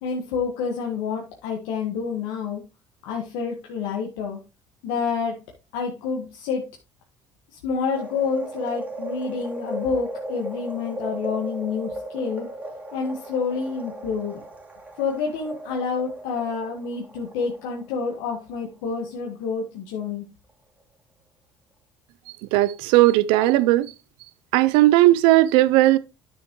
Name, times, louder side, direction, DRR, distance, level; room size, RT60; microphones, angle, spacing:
voice 1, 0.0-2.6 3.0-4.4 4.8-5.4 5.7-6.6 7.5-12.5 12.9-14.4 15.0-20.3, left 5 dB, 85° left, 1.6 m, -28 dB
sound 1, 7.9-18.2 18.6-18.7, right 2 dB, 15° right, 2.6 m, -36 dB
voice 2, 22.5-23.9 24.5-26.0, right 16 dB, 85° right, 0.5 m, -17 dB
9.9 x 6.4 x 3.0 m
supercardioid pair, 95°, 9 cm